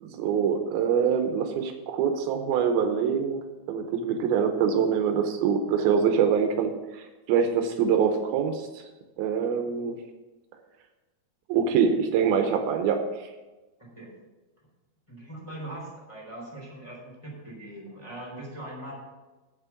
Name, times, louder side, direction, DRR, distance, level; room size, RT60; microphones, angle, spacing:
voice 1, 0.0-3.4 3.7-8.8 9.2-10.0 11.5-13.3, right 7 dB, 80° right, 5 dB, 2.6 m, -25 dB
voice 2, 13.8-14.1 15.1-18.9, right 1 dB, 10° left, -4 dB, 3.0 m, -41 dB
8.2 x 7.3 x 7.0 m, 1.2 s
omnidirectional pair, 4.4 m